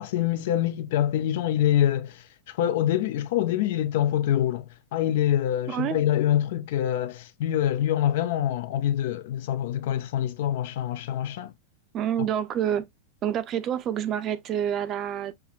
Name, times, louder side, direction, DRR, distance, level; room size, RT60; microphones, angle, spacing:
voice 1, 0.0-4.6 4.9-11.5, left 11 dB, 70° left, 0.4 m, -25 dB
voice 2, 5.7-6.0 11.9-12.9 13.2-15.3, right 10 dB, 35° right, 0.5 m, -27 dB
5.6 x 2.0 x 2.4 m
supercardioid pair, 135°, 0 cm